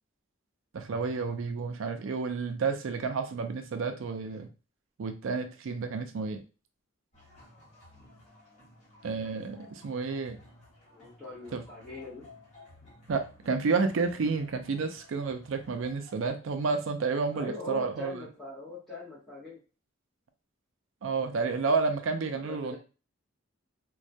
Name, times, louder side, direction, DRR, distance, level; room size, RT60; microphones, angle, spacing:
voice 1, 0.7-4.5 5.0-6.4 9.0-10.4 11.5-11.6 13.1-18.2 21.0-22.8, right 4 dB, 70° right, 8 dB, 0.4 m, -30 dB
sound 1, 7.1-16.3, left 2 dB, 35° left, 1.0 m, -55 dB
voice 2, 10.9-12.2 17.3-19.6 22.4-22.8, left 3 dB, ahead, -10 dB, 0.8 m, -41 dB
2.2 x 2.1 x 2.6 m, 0.33 s
head